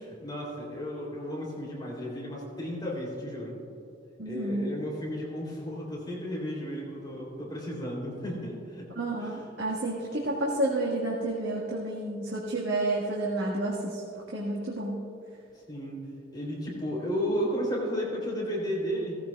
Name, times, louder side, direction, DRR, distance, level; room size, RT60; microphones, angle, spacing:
voice 1, 0.2-3.5 4.2-8.9 9.2-9.3 15.7-16.0 16.3-19.2, equal, 25° left, -3 dB, 3.2 m, -33 dB
voice 2, 4.2-4.7 8.9-14.0 14.3-15.0, right 2 dB, 75° right, -4 dB, 1.7 m, -30 dB
18.0 x 14.5 x 2.4 m, 2.6 s
head